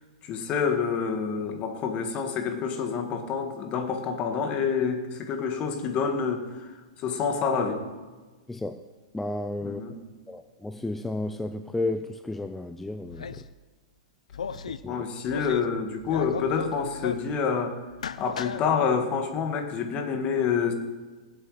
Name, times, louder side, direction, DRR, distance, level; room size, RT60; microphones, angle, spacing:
voice 1, 0.2-6.7 7.0-7.8 9.6-10.0 14.9-17.8 18.2-20.7, left 6 dB, 35° left, 6 dB, 1.7 m, -27 dB
voice 2, 9.1-9.8 10.3-13.3 14.7-15.0, left 2 dB, 5° left, 9 dB, 0.4 m, -32 dB
sound 1, 13.1-13.5 14.3-14.8 15.2-15.7 16.0-17.3 17.9-18.6, left 6 dB, 90° left, 0.5 m, -36 dB
18.0 x 8.0 x 4.9 m, 1.3 s
hypercardioid pair, 130°, 4 cm